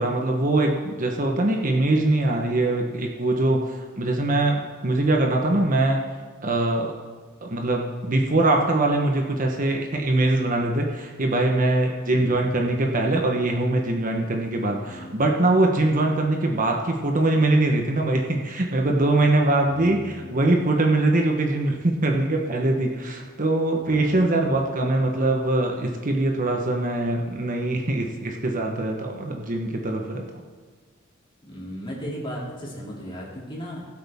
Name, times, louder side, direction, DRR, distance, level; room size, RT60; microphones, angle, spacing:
voice 1, 0.0-6.0 6.4-6.9 7.4-30.2, right 2 dB, 40° right, 1 dB, 1.1 m, -22 dB
voice 2, 12.1-12.6 14.8-15.3 19.7-20.5 23.9-24.4 31.4-33.8, equal, 25° left, -4 dB, 3.0 m, -37 dB
19.0 x 8.2 x 3.6 m, 1.5 s
head